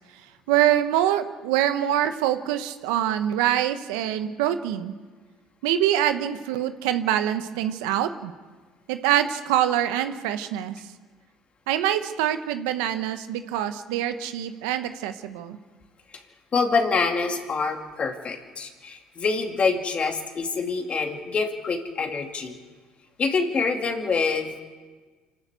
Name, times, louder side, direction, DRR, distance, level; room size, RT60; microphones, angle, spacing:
voice 1, 0.5-4.9 5.6-8.3 8.9-10.8 11.7-15.6, right 11 dB, 85° right, 9 dB, 1.1 m, -25 dB
voice 2, 16.5-22.6 23.2-24.6, left 4 dB, 40° left, 3 dB, 2.5 m, -26 dB
26.0 x 12.5 x 8.2 m, 1.4 s
supercardioid pair, 80°, 3 cm